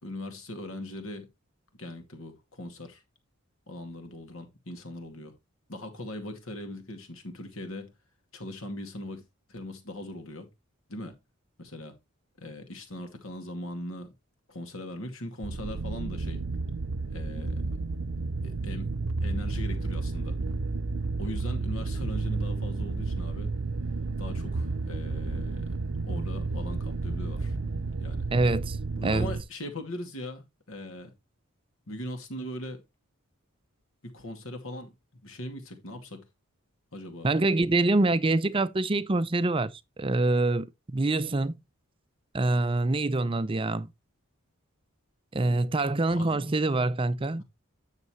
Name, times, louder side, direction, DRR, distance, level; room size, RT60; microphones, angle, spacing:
voice 1, 0.0-1.3 1.7-3.0 3.7-5.3 5.7-7.9 8.3-9.2 9.5-10.5 10.9-11.2 11.6-11.9 12.4-14.1 14.5-16.4 17.1-17.7 18.4-18.9 19.2-20.4 21.2-23.5 24.2-25.7 26.0-27.6 28.0-28.3 29.0-31.1 31.9-32.8 34.0-34.9 35.2-36.3 36.9-37.3 46.1-46.5 47.4-47.5, left 1 dB, 65° left, 2.3 m, -40 dB
sound 1, 15.4-29.4, right 3 dB, 75° right, 0.7 m, -31 dB
voice 2, 28.3-28.8 29.0-29.3 37.2-41.6 42.3-43.9 45.3-47.4, right 2 dB, 25° right, 0.5 m, -25 dB
9.7 x 6.7 x 3.2 m
head